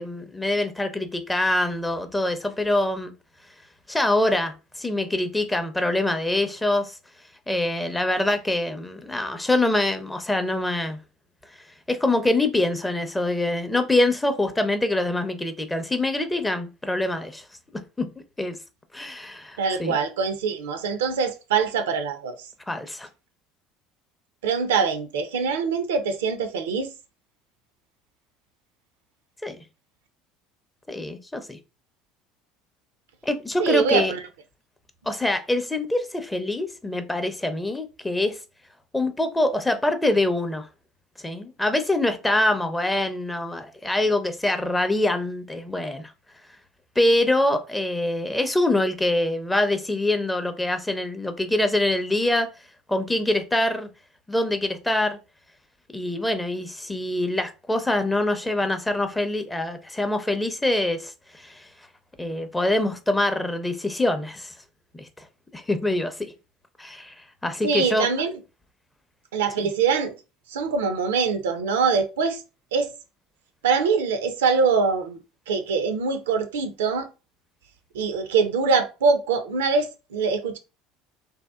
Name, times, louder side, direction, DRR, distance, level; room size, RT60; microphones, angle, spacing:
voice 1, 0.0-3.1 3.9-7.0 7.5-11.0 11.9-17.4 18.0-18.1 18.4-18.6 18.9-20.0 22.7-23.1 29.4-29.6 30.9-31.6 33.2-34.1 35.1-38.4 38.9-40.7 41.2-46.1 47.0-52.5 52.9-53.9 54.3-55.2 55.9-61.7 62.2-64.5 64.9-65.1 65.5-66.3 66.8-67.1 67.4-68.1 69.6-69.7, left 1 dB, 10° left, 0.5 m, -24 dB
voice 2, 19.6-22.4 24.4-26.9 33.6-34.2 67.6-68.4 69.3-70.1 70.5-72.4 72.7-72.9 73.6-75.2 75.5-77.1 77.9-80.6, right 5 dB, 75° right, 0.4 m, -23 dB
2.7 x 2.1 x 2.3 m
hypercardioid pair, 65°, 0 cm